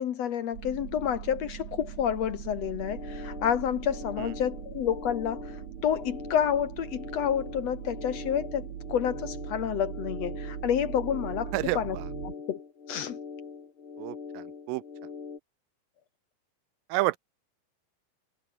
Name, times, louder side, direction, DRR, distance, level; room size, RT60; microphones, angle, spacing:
voice 1, 0.0-12.0 12.2-12.6 12.9-13.2, left 9 dB, 60° left, 2.0 m, -29 dB
sound 1, 0.5-12.3, right 10 dB, 55° right, 2.7 m, -40 dB
sound 2, 2.6-15.4, left 5 dB, 40° left, 3.3 m, -43 dB
voice 2, 11.5-12.0 14.0-14.8 16.9-17.2, right 19 dB, 85° right, 2.3 m, -30 dB
omnidirectional pair, 3.9 m